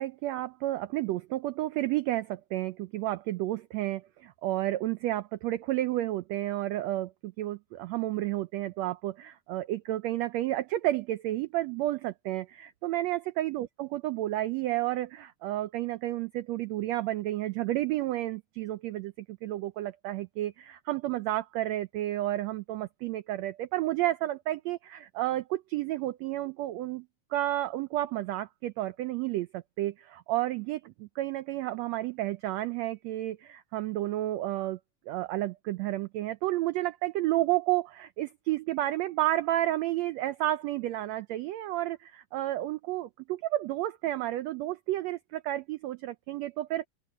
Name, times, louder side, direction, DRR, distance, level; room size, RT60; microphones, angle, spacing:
voice 1, 0.0-27.1 27.3-34.8 35.1-46.9, right 15 dB, 85° right, 1.5 m, -31 dB
open air
omnidirectional pair, 3.7 m